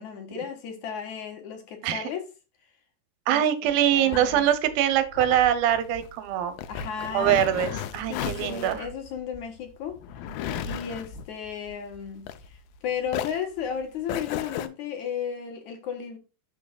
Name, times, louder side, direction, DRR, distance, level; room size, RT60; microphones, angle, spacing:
voice 1, 0.0-2.3 3.3-3.4 3.9-4.5 6.7-7.4 8.1-16.2, left 7 dB, 65° left, 2.3 m, -34 dB
voice 2, 3.3-6.5 7.1-8.9, right 11 dB, 80° right, 2.7 m, -23 dB
sound 1, 3.7-12.8 13.1-14.7, left 9 dB, 85° left, 2.5 m, -35 dB
12.0 x 5.3 x 2.3 m
omnidirectional pair, 4.1 m